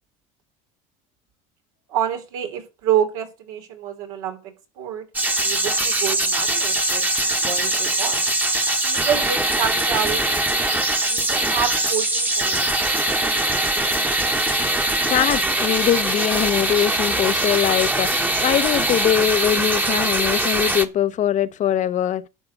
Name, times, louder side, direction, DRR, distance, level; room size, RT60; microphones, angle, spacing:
voice 1, 1.9-5.0 5.4-8.2 8.8-10.2 10.5-10.8 11.0-12.8, right 9 dB, 85° right, 3.2 m, -28 dB
sound 1, 5.1-20.8, right 1 dB, 10° right, 1.2 m, -22 dB
voice 2, 15.0-22.2, left 11 dB, 45° left, 0.9 m, -22 dB
11.0 x 4.9 x 8.1 m
supercardioid pair, 105°, 17 cm